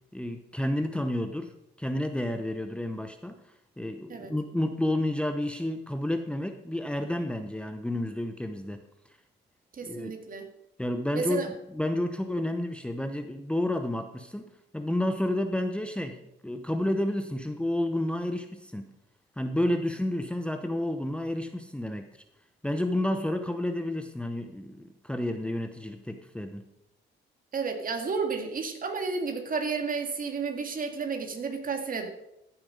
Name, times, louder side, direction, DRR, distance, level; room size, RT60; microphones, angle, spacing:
voice 1, 0.1-8.8 9.8-10.1 10.8-14.4 14.7-16.2 16.4-18.9 19.4-22.2 22.6-26.6, left 1 dB, 5° left, 7 dB, 0.8 m, -30 dB
voice 2, 9.7-10.4 11.1-11.5 27.5-32.1, right 5 dB, 45° right, 5 dB, 2.0 m, -31 dB
14.5 x 7.3 x 5.2 m, 0.85 s
cardioid pair, 90°, 20 cm